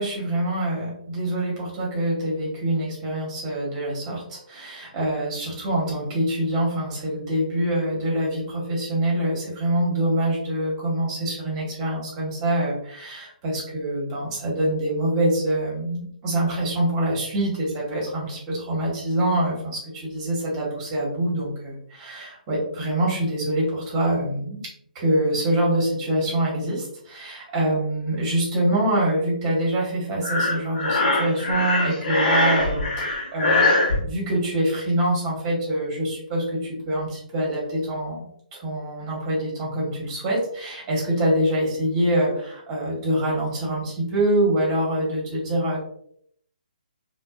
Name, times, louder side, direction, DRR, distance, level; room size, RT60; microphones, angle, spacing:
voice 1, 0.0-24.6 24.9-45.8, right 1 dB, 20° right, -4 dB, 1.0 m, -25 dB
Breathing, 30.2-34.0, left 2 dB, 55° left, 0.8 m, -22 dB
2.6 x 2.2 x 2.3 m, 0.67 s
hypercardioid pair, 150°, 5 cm